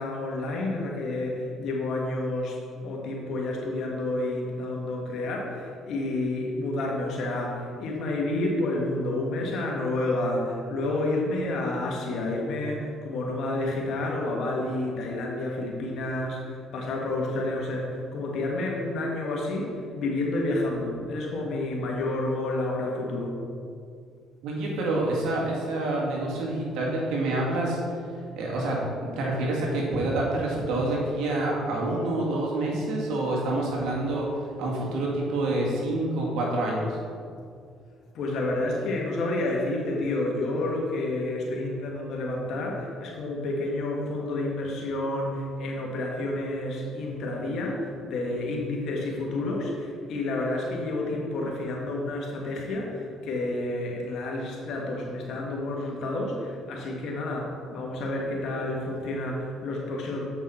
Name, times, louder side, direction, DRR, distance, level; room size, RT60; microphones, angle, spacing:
voice 1, 0.0-23.4 38.1-60.3, left 2 dB, 65° left, -1 dB, 1.5 m, -30 dB
voice 2, 24.4-27.8 28.4-34.3 34.6-37.0, right 2 dB, 80° right, -3 dB, 1.9 m, -27 dB
7.8 x 5.4 x 4.2 m, 2.3 s
supercardioid pair, 80°, 0 cm